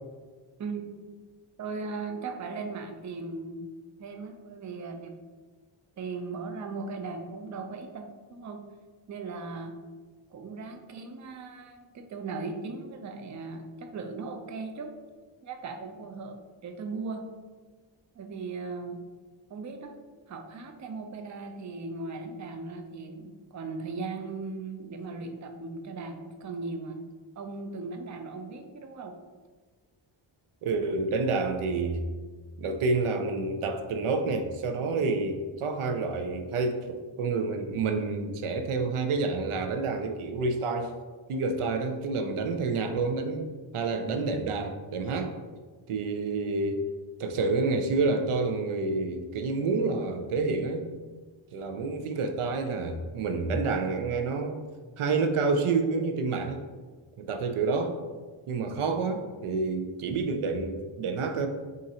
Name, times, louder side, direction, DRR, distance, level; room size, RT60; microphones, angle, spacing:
voice 1, 0.6-1.1 1.6-3.7 4.0-5.2 6.0-8.6 9.1-9.8 10.3-14.9 15.4-17.2 18.1-19.0 19.5-20.0 20.3-27.0 27.4-29.2, right 4 dB, 40° right, 5 dB, 0.4 m, -38 dB
voice 2, 30.6-32.0 32.6-41.0 41.3-45.3 45.9-46.9 47.2-50.9 51.5-54.6 55.0-56.6 57.2-58.0 58.5-61.5, right 3 dB, 85° right, 6 dB, 0.6 m, -28 dB
3.8 x 2.5 x 4.1 m, 1.4 s
wide cardioid pair, 95°, 49 cm